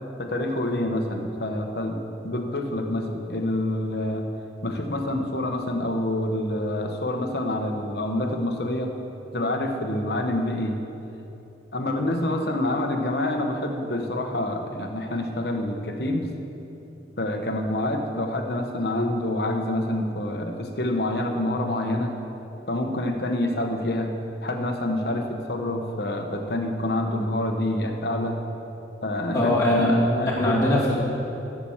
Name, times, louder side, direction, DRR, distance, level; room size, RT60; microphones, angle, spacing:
voice 1, 0.2-4.3 4.6-8.9 9.3-10.8 11.7-16.3 17.2-22.1 22.7-24.1 24.4-28.4 29.0-30.6, left 1 dB, 60° left, 4 dB, 1.1 m, -27 dB
voice 2, 29.3-30.0 30.2-31.0, left 1 dB, 20° left, -7 dB, 2.5 m, -21 dB
13.5 x 6.0 x 7.2 m, 3.0 s
head